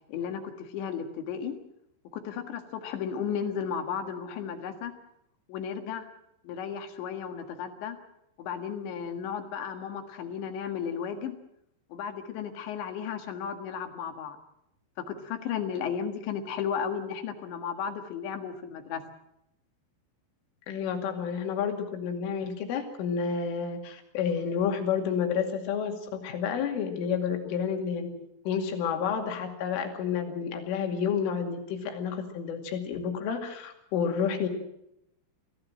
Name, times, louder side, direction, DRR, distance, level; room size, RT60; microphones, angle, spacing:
voice 1, 0.1-1.6 2.1-5.0 5.5-6.1 6.4-8.0 8.4-11.4 11.9-14.4 15.0-19.0, left 7 dB, 70° left, 6 dB, 3.8 m, -34 dB
voice 2, 20.7-28.1 28.5-34.5, left 7 dB, 85° left, 4 dB, 4.9 m, -30 dB
24.5 x 16.5 x 7.7 m, 0.80 s
omnidirectional pair, 5.5 m